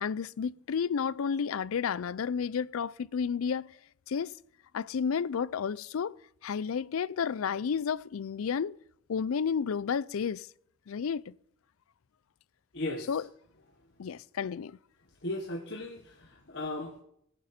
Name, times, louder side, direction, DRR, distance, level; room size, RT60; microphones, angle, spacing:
voice 1, 0.0-3.7 4.1-4.3 4.7-6.1 6.4-8.8 9.1-10.5 10.9-11.3 13.1-13.3 14.0-14.8, left 6 dB, 85° left, 0.4 m, -31 dB
voice 2, 12.7-13.1 15.2-17.0, left 1 dB, 55° left, 1.3 m, -36 dB
20.0 x 9.1 x 4.3 m
head